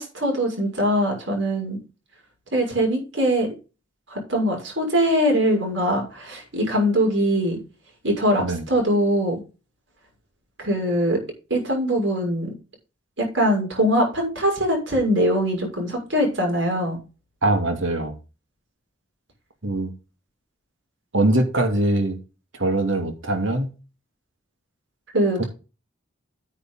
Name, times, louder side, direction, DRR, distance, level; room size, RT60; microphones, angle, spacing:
voice 1, 0.0-1.8 2.5-3.5 4.1-7.6 8.0-9.4 10.6-11.2 11.5-12.5 13.2-17.0 25.1-25.4, equal, 75° right, 6.3 m, -22 dB
voice 2, 17.4-18.1 19.6-19.9 21.1-22.2 22.6-23.7, right 2 dB, 90° right, 2.7 m, -22 dB
9.6 x 8.8 x 4.0 m
head